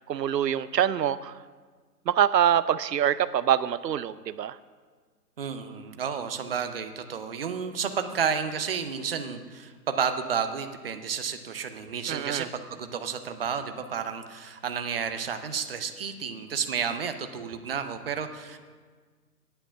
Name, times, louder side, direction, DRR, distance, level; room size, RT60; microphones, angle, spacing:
voice 1, 0.0-1.3 2.1-4.6 12.1-12.5, right 10 dB, 90° right, 15 dB, 0.5 m, -25 dB
voice 2, 5.4-18.6, right 6 dB, 35° right, 8 dB, 0.7 m, -31 dB
9.9 x 9.0 x 5.7 m, 1.5 s
figure-of-eight pair, 150°, 48 cm